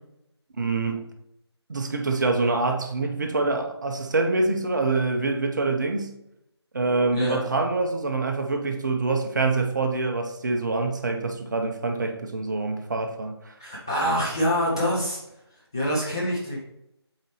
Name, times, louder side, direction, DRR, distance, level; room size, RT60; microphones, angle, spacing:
voice 1, 0.6-1.0 1.7-6.1 6.7-13.5, right 3 dB, 40° right, 0.7 m, -25 dB
voice 2, 7.1-7.4 13.6-15.2 15.7-16.6, equal, 10° left, 0.4 m, -25 dB
7.8 x 4.0 x 3.0 m
figure-of-eight pair, 160°, 14 cm